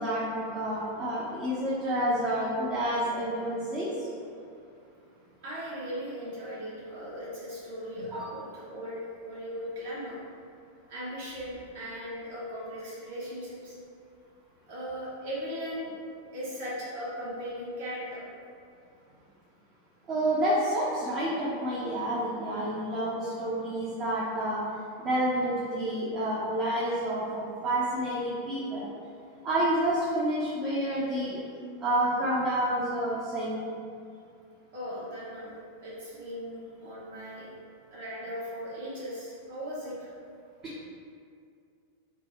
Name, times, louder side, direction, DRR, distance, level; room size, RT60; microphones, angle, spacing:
voice 1, 0.0-3.9 8.1-8.3 20.1-24.6 25.0-28.8 29.4-31.4 31.8-33.7, right 1 dB, 30° right, -8 dB, 0.7 m, -29 dB
voice 2, 5.4-10.2 10.9-13.7 14.7-15.9 16.3-18.2 34.7-37.5 37.9-40.1, equal, 55° right, -7 dB, 1.2 m, -38 dB
3.4 x 2.2 x 4.2 m, 2.4 s
figure-of-eight pair, 90°, 0 cm